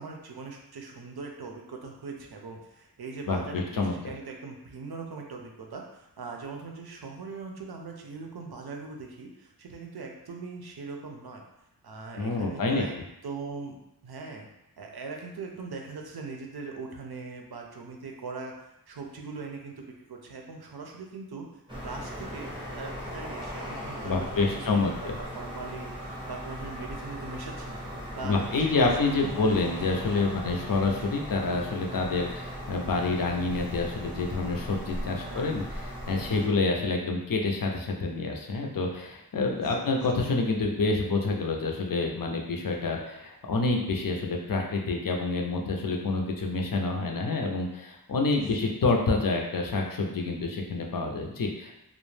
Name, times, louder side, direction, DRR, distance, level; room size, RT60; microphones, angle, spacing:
voice 1, 0.0-11.4 11.8-13.0 13.2-13.8 14.0-14.5 14.8-18.5 18.9-21.5 21.7-22.5 22.8-24.7 24.9-27.8 28.1-29.5 31.0-31.2 35.2-35.6 39.6-40.0 48.3-48.7, right 4 dB, 75° right, 1 dB, 0.5 m, -41 dB
voice 2, 3.3-3.9 12.2-12.8 24.0-25.1 28.2-51.7, left 3 dB, 60° left, 1 dB, 0.5 m, -28 dB
sound 1, 21.7-36.5, equal, 15° right, 0.7 m, -38 dB
2.4 x 2.1 x 3.1 m, 0.86 s
wide cardioid pair, 40°, 39 cm